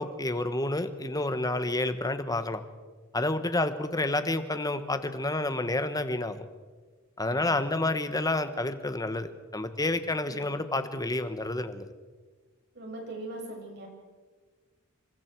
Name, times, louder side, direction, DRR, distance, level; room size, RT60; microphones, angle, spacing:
voice 1, 0.0-2.6 3.1-6.4 7.2-11.9, left 2 dB, 15° left, 10 dB, 1.3 m, -29 dB
voice 2, 12.7-13.9, right 2 dB, 50° right, 0 dB, 7.0 m, -40 dB
28.0 x 24.5 x 4.7 m, 1.4 s
head